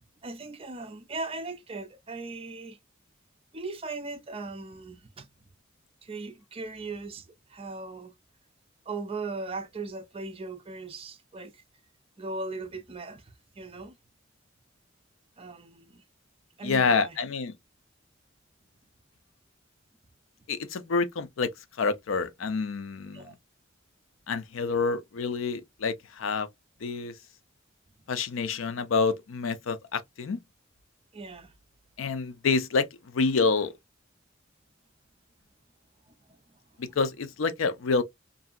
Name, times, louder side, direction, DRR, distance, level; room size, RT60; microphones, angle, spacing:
voice 1, 0.2-2.8 3.5-5.3 6.0-8.1 8.9-11.6 12.2-13.9 15.4-16.0 16.6-17.2 23.1-23.4 31.1-31.5 36.1-36.4, right 3 dB, 30° right, 0.5 m, -38 dB
voice 2, 16.6-17.5 20.5-21.5 21.8-23.2 24.3-26.5 26.8-27.1 28.1-30.4 32.0-32.9 33.1-33.7 36.8-38.0, left 4 dB, 80° left, 0.5 m, -27 dB
2.8 x 2.6 x 2.3 m
head